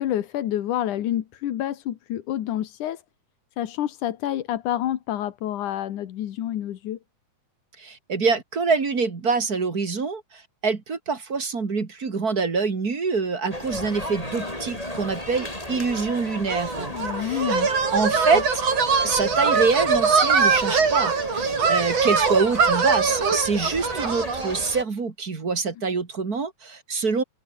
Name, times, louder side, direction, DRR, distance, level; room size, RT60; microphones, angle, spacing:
voice 1, 0.0-3.0 3.6-7.0 16.9-17.7, left 12 dB, 90° left, 2.9 m, -28 dB
voice 2, 7.8-16.9 17.2-17.5 17.9-18.6 19.0-27.2, right 4 dB, 30° right, 2.7 m, -25 dB
sound 1, 13.5-24.8, left 1 dB, 10° left, 6.7 m, -35 dB
sound 2, 16.5-24.6, right 5 dB, 55° right, 4.8 m, -22 dB
omnidirectional pair, 3.4 m